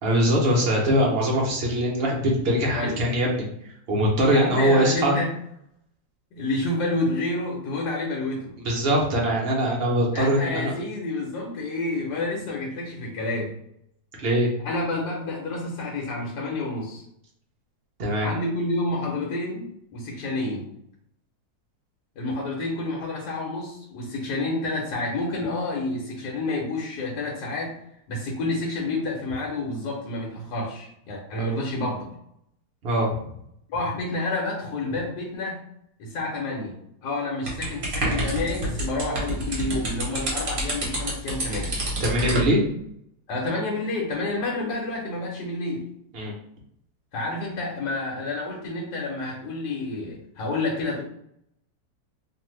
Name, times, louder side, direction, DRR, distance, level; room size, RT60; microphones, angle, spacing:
voice 1, 0.0-3.4 3.9-5.1 8.6-10.7 14.1-14.5 18.0-18.3 32.8-33.1 42.0-42.6 46.1-46.3, equal, 70° right, -2 dB, 0.5 m, -22 dB
voice 2, 4.3-5.3 6.3-8.6 10.1-13.5 14.6-17.0 18.2-20.7 22.2-27.8 28.1-32.1 33.7-35.6 36.0-41.8 43.3-45.9 47.1-51.0, left 2 dB, 70° left, -2 dB, 1.3 m, -29 dB
sound 1, 37.5-42.5, right 1 dB, 45° right, 0.8 m, -28 dB
2.6 x 2.5 x 3.1 m, 0.72 s
omnidirectional pair, 2.0 m